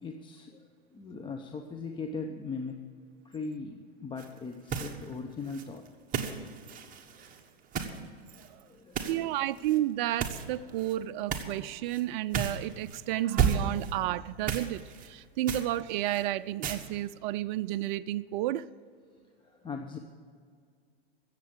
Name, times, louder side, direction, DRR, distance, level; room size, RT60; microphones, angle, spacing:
voice 1, 0.0-2.8 3.2-5.8 7.8-8.0 8.6-9.3 19.4-20.0, left 4 dB, 15° left, 4 dB, 0.8 m, -40 dB
sound 1, 4.2-4.4 4.7-5.1 5.4-8.0 8.3-8.5 8.9-9.2 9.6-9.8 10.2-10.9 11.3-11.6 11.9-12.0 12.3-13.0 13.4-13.9 14.5-15.1 15.5-16.2 16.6-16.8, right 7 dB, 25° right, 1.4 m, -33 dB
voice 2, 9.1-18.7, right 14 dB, 50° right, 13 dB, 0.5 m, -31 dB
16.0 x 7.5 x 8.7 m, 2.1 s
hypercardioid pair, 115°, 31 cm